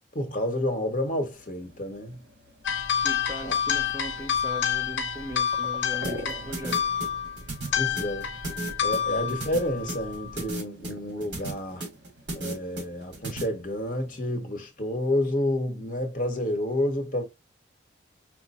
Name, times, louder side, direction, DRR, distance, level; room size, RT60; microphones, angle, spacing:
voice 1, 0.1-2.2 3.4-3.5 7.7-8.3 8.8-11.8 12.3-17.2, left 1 dB, 45° left, 1.0 m, -29 dB
sound 1, 1.3-14.2, equal, 85° right, 1.1 m, -47 dB
sound 2, 2.6-10.6, left 8 dB, 85° left, 0.6 m, -29 dB
voice 2, 3.0-6.9, equal, 15° right, 0.6 m, -39 dB
sound 3, 6.0-13.4, right 2 dB, 65° right, 2.8 m, -35 dB
4.8 x 2.1 x 4.1 m
head